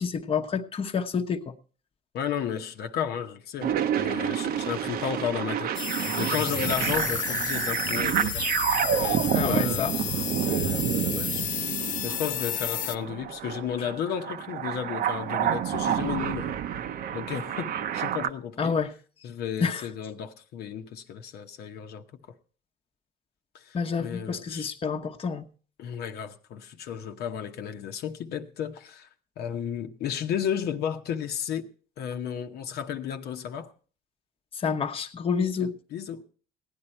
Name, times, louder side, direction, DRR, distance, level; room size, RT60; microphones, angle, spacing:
voice 1, 0.0-1.5 9.3-9.9 18.6-18.9 19.6-19.9 23.7-25.5 34.6-35.7, left 6 dB, 35° left, 1.0 m, -28 dB
voice 2, 2.1-8.5 9.0-11.4 12.0-16.6 17.1-18.8 19.2-22.0 23.5-24.7 25.8-29.1 29.4-31.7 32.0-33.7 35.3-36.2, left 8 dB, 70° left, 0.9 m, -33 dB
sound 1, 3.6-18.3, right 9 dB, 60° right, 0.7 m, -29 dB
sound 2, 5.8-13.0, left 10 dB, 50° left, 0.6 m, -32 dB
16.5 x 9.9 x 4.4 m
cardioid pair, 110°, 17 cm